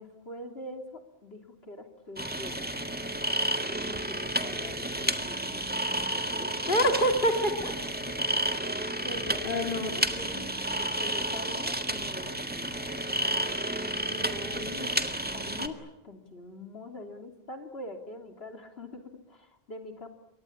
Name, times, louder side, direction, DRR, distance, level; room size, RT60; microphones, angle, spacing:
voice 1, 0.0-2.7 3.8-5.6 6.1-6.8 8.1-8.2 9.0-10.0 10.8-13.0 14.1-14.9 15.3-20.1, left 1 dB, 80° left, 5 dB, 3.4 m, -44 dB
sound 1, 2.2-15.7, right 1 dB, 10° right, 1.8 m, -31 dB
voice 2, 6.7-7.7 9.4-10.5, equal, 55° left, 4 dB, 2.7 m, -27 dB
28.0 x 24.0 x 8.7 m, 0.89 s
omnidirectional pair, 1.0 m